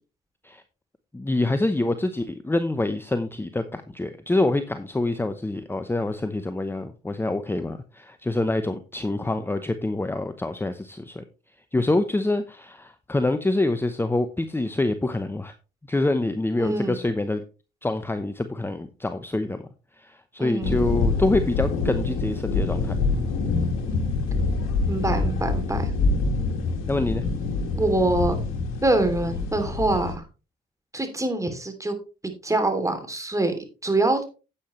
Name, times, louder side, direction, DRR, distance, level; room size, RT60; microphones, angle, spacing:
voice 1, 1.1-11.2 11.7-15.5 15.9-17.4 17.8-19.6 20.0-23.0 26.9-27.2, left 2 dB, 10° left, 10 dB, 0.9 m, -26 dB
voice 2, 16.6-17.0 20.4-20.8 24.9-25.9 27.7-28.4 28.8-30.3 30.9-32.0 32.2-33.5 33.8-34.2, right 2 dB, 15° right, 7 dB, 2.9 m, -24 dB
sound 1, 20.6-30.1, left 3 dB, 80° left, 2.1 m, -26 dB
9.9 x 8.5 x 3.1 m, 0.32 s
supercardioid pair, 65°, 20 cm